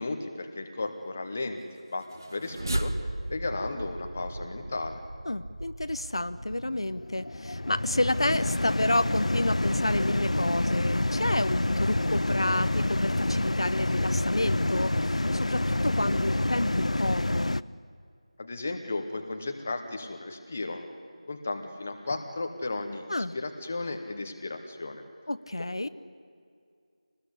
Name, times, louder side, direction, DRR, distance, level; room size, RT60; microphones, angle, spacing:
voice 1, 0.0-2.9 3.3-5.0 18.4-20.9 21.3-23.0 23.3-25.0 25.8-25.9, left 2 dB, 15° left, 6 dB, 0.9 m, -34 dB
sound 1, 2.0-7.3, right 1 dB, 35° right, 0.9 m, -36 dB
voice 2, 5.3-17.6 23.1-23.4 25.3-25.9, left 1 dB, 55° left, 13 dB, 0.7 m, -30 dB
sound 2, 6.4-17.6, left 1 dB, 90° left, 0.7 m, -28 dB
26.0 x 19.5 x 9.9 m, 2.3 s
figure-of-eight pair, 180°, 3 cm